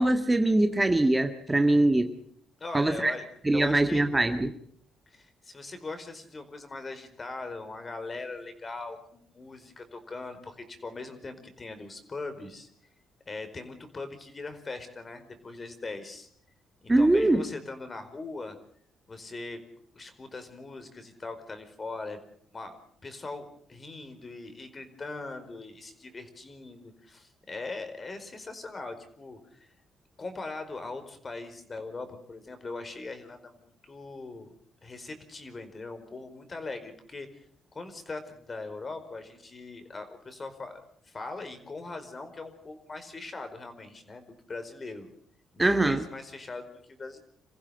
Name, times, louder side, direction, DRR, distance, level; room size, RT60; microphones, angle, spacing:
voice 1, 0.0-2.1 2.7-3.1 3.4-4.5 16.9-17.5 45.6-46.0, right 2 dB, 15° right, 7 dB, 1.7 m, -23 dB
voice 2, 2.6-3.3 3.5-4.1 5.1-12.7 13.3-16.3 17.0-18.6 19.1-19.6 19.9-22.2 22.5-29.7 30.2-34.5 34.8-37.4 37.7-45.1 45.5-47.2, left 3 dB, 30° left, 9 dB, 4.8 m, -40 dB
27.5 x 15.5 x 7.8 m, 0.65 s
cardioid pair, 90°, 0 cm